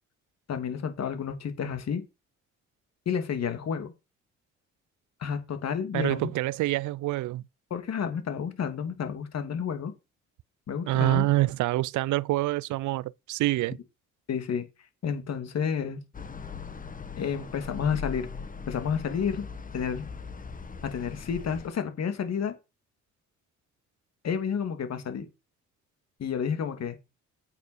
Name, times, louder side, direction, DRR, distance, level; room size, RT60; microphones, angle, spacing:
voice 1, 0.5-2.0 3.1-3.9 5.2-6.3 7.7-9.9 10.7-11.3 14.3-14.7 15.0-16.0 17.2-18.3 18.7-19.5 19.7-20.1 20.8-22.5 24.2-25.3 26.2-27.0, left 7 dB, 60° left, 2.8 m, -30 dB
voice 2, 5.9-7.4 10.9-13.8, right 17 dB, 80° right, 0.5 m, -26 dB
sound 1, 16.1-21.7, left 5 dB, 25° left, 1.7 m, -40 dB
8.5 x 7.1 x 6.1 m
cardioid pair, 90°, 30 cm